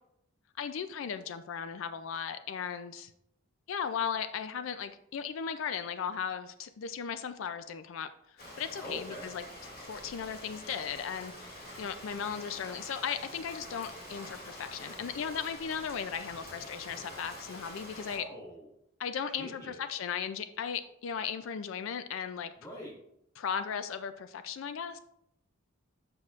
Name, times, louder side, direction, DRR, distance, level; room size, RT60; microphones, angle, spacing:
voice 1, 0.6-3.1 3.7-8.1 8.6-9.4 9.8-18.3 19.0-22.5 23.4-25.0, left 7 dB, 70° left, 11 dB, 0.3 m, -36 dB
Rain, 8.4-18.2, left 1 dB, 45° left, 2.0 m, -46 dB
voice 2, 8.8-9.3 18.1-18.7 19.4-19.8 22.6-22.9, equal, 15° left, -5 dB, 1.9 m, -43 dB
7.6 x 5.9 x 2.4 m, 0.78 s
head